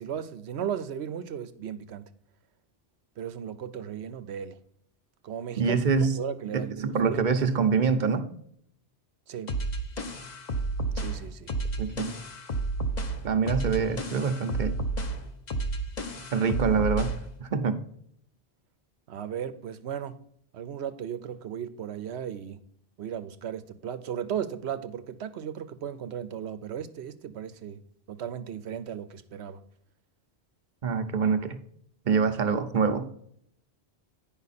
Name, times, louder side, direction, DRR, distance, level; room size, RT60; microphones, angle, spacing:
voice 1, 0.0-2.1 3.2-4.6 5.2-5.8 6.1-7.2 9.3-9.5 10.9-11.5 19.1-20.2 20.5-22.6 23.0-27.8 28.1-29.6, right 9 dB, 80° right, 0.9 m, -36 dB
voice 2, 5.6-6.2 6.5-8.3 11.8-12.1 13.2-14.8 16.3-17.1 17.4-17.8 30.8-31.6 32.0-33.1, right 5 dB, 50° right, 0.9 m, -25 dB
sound 1, 9.5-17.3, right 2 dB, 45° left, 1.0 m, -31 dB
9.5 x 5.7 x 4.1 m
omnidirectional pair, 1.1 m